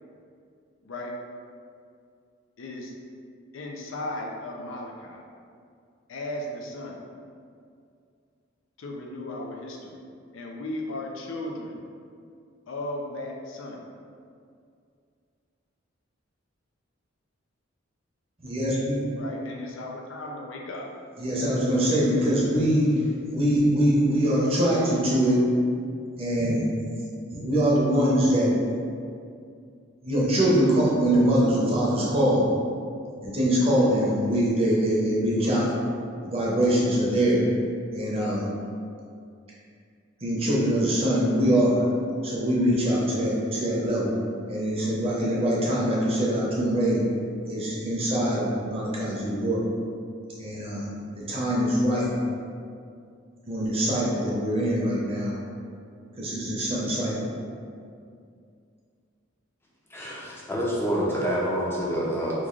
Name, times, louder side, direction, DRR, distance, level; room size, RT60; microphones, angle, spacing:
voice 1, 0.8-1.1 2.6-2.9 3.5-5.2 6.1-7.0 8.8-10.0 10.3-11.8 12.7-13.8 19.2-20.9, left 1 dB, 75° left, 0 dB, 0.5 m, -36 dB
voice 2, 18.4-19.0 21.2-22.9 23.2-25.4 26.2-26.7 27.3-28.6 30.0-32.5 33.2-35.7 36.2-37.5 37.9-38.5 40.2-41.8 42.2-44.2 44.5-47.1 47.4-49.7 50.4-50.9 51.2-52.1 53.5-55.4 56.2-57.3, equal, 30° right, -5 dB, 0.6 m, -23 dB
voice 3, 59.9-62.5, equal, 10° left, -5 dB, 0.5 m, -27 dB
3.1 x 2.3 x 3.7 m, 2.3 s
head